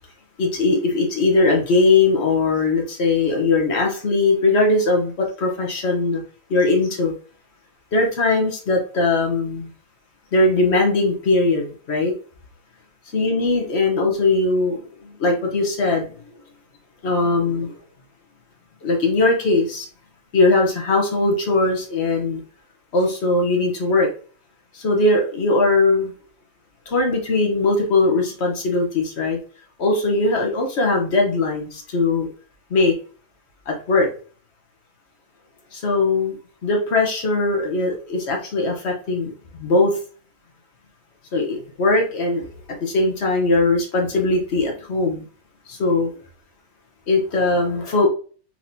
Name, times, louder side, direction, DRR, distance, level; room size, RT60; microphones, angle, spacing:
voice 1, 0.4-6.2 6.5-7.1 7.9-9.7 10.3-12.1 13.1-16.1 17.0-17.8 18.8-19.9 20.3-22.4 22.9-24.1 24.7-26.1 26.9-29.4 29.8-32.3 32.7-32.9 33.7-34.1 35.7-40.0 41.3-45.2 45.7-46.1 47.1-48.1, left 3 dB, 40° left, 1 dB, 1.0 m, -20 dB
4.6 x 3.7 x 2.7 m, 0.40 s
omnidirectional pair, 2.3 m